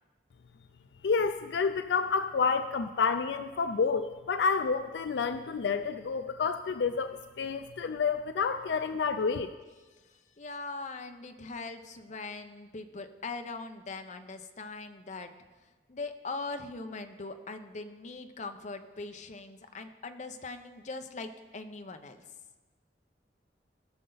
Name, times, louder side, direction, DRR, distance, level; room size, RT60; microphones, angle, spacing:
voice 1, 1.0-7.1 7.4-9.5, left 5 dB, 75° left, 9 dB, 0.4 m, -29 dB
voice 2, 10.1-15.3 15.9-22.2, left 3 dB, 45° left, 7 dB, 0.7 m, -41 dB
18.5 x 6.6 x 3.9 m, 1.3 s
head